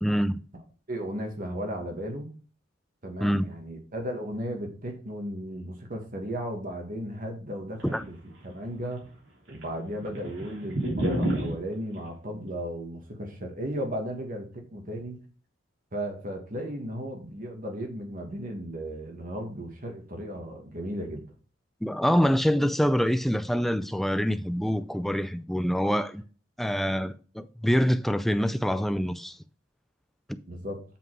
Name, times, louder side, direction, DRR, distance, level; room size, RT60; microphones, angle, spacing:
voice 1, 0.0-0.4 3.2-3.5 7.9-8.0 21.8-26.2 26.6-29.4 30.3-30.4, equal, ahead, 0.3 m, -25 dB
voice 2, 0.9-2.3 3.0-9.1 9.5-15.2 15.9-21.2 30.5-30.8, equal, 45° right, 1.7 m, -35 dB
sound 1, 7.8-8.8 9.0-9.1 9.5-11.6, right 1 dB, 85° right, 3.1 m, -29 dB
7.4 x 5.5 x 4.6 m
head